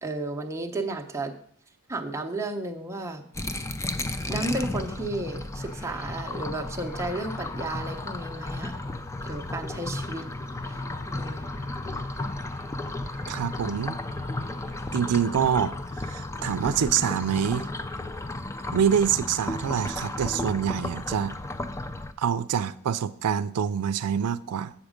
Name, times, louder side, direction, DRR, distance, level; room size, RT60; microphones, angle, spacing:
voice 1, 0.0-1.3 1.9-3.3 4.3-8.8 9.2-10.3 10.6-10.8 11.1-11.6, right 2 dB, 15° right, 0.7 m, -33 dB
sound 1, 3.3-22.1, left 2 dB, 15° left, 0.4 m, -34 dB
sound 2, 5.6-16.2, left 2 dB, 40° left, 0.9 m, -52 dB
voice 2, 13.3-14.0 14.9-17.7 18.7-21.3 22.2-24.7, right 8 dB, 90° right, 0.4 m, -26 dB
7.2 x 7.1 x 5.0 m
head